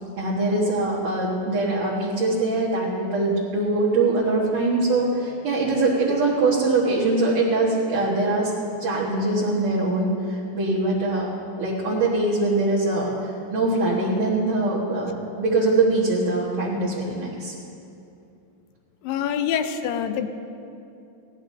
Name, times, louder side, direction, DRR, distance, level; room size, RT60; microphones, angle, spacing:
voice 1, 0.2-8.5 8.8-11.3 11.6-17.5, right 2 dB, 55° right, -6 dB, 2.4 m, -23 dB
voice 2, 19.0-20.3, left 8 dB, 80° left, 8 dB, 2.3 m, -25 dB
18.5 x 17.0 x 2.7 m, 2.6 s
omnidirectional pair, 4.2 m